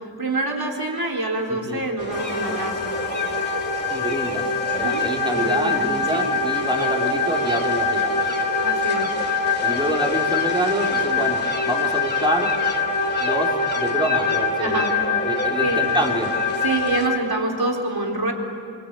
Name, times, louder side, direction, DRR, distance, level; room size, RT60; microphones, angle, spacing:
voice 1, 0.2-3.2 4.8-5.0 5.3-5.8 6.1-6.4 8.6-9.2 14.6-14.9 15.6-15.8 16.6-18.3, right 2 dB, 55° right, 0 dB, 4.0 m, -26 dB
sound 1, 2.0-17.1, left 1 dB, 20° left, 2.7 m, -33 dB
sound 2, 2.1-17.2, left 4 dB, 45° left, 2.3 m, -24 dB
voice 2, 3.9-8.2 9.6-12.5 13.2-15.0 15.2-16.3, right 1 dB, 10° right, 0 dB, 3.6 m, -27 dB
28.5 x 24.0 x 8.6 m, 2.7 s
wide cardioid pair, 65°, 45 cm